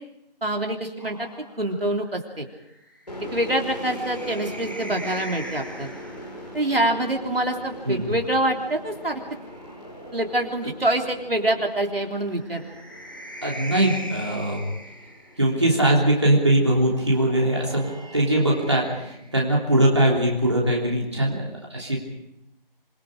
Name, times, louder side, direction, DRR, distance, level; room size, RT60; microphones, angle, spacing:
voice 1, 0.4-1.3 1.6-2.5 3.2-5.9 6.5-9.2 10.1-12.6, right 1 dB, 75° right, 2 dB, 3.5 m, -25 dB
sound 1, 1.0-6.5 7.9-10.9 12.2-15.7 17.0-19.9, equal, 20° left, 2.1 m, -42 dB
sound 2, 3.1-16.5, equal, 45° left, 5.0 m, -41 dB
voice 2, 13.4-14.7 15.4-22.1, right 1 dB, 30° right, -2 dB, 3.3 m, -21 dB
27.0 x 23.0 x 5.0 m, 0.84 s
figure-of-eight pair, 180°, 29 cm